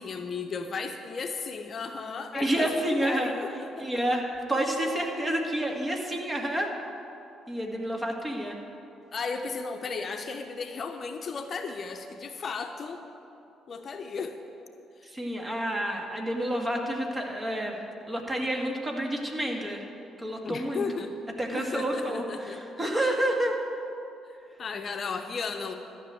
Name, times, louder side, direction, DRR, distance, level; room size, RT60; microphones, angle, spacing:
voice 1, 0.0-4.0 9.1-13.0 13.7-14.4 15.0-15.1 20.4-21.1 21.5-22.6 23.0-23.2 24.3-25.7, left 5 dB, 45° left, 6 dB, 0.8 m, -35 dB
voice 2, 2.3-3.3 3.8-4.2 4.5-6.7 7.5-8.6 15.0-17.8 18.1-19.8 20.2-20.8 21.4-23.5, right 1 dB, 25° right, 1 dB, 2.1 m, -29 dB
13.0 x 6.2 x 9.0 m, 2.8 s
hypercardioid pair, 45°, 0 cm